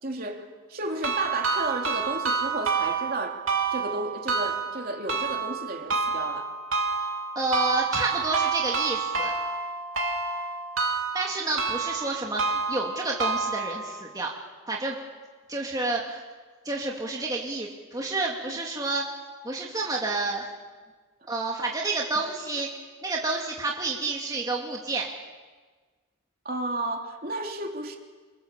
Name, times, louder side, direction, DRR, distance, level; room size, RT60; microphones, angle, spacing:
voice 1, 0.0-3.4 3.7-6.5 18.5-18.6 26.4-28.0, right 2 dB, 45° right, 2 dB, 3.2 m, -33 dB
sound 1, 1.0-14.0, right 5 dB, 75° right, 3.7 m, -29 dB
voice 2, 7.4-9.3 11.1-14.3 14.7-15.0 15.5-16.2 16.6-19.0 19.4-20.4 21.3-22.7 23.0-25.1, right 2 dB, 15° right, -2 dB, 2.5 m, -29 dB
28.0 x 27.5 x 7.5 m, 1.4 s
head